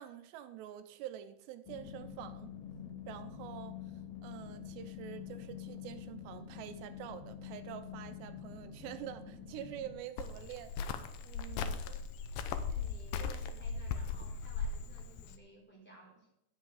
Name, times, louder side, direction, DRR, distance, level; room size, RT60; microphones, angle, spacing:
voice 1, 0.0-2.5 3.1-3.8 4.2-10.7 11.2-11.8, right 11 dB, 80° right, 9 dB, 2.8 m, -46 dB
sound 1, 1.7-10.0, left 8 dB, 60° left, 3.1 m, -47 dB
Cricket, 10.2-15.3, left 5 dB, 85° left, 1.9 m, -38 dB
voice 2, 12.3-16.3, right 2 dB, 5° left, -2 dB, 3.2 m, -56 dB
12.5 x 8.1 x 4.9 m, 0.82 s
omnidirectional pair, 5.1 m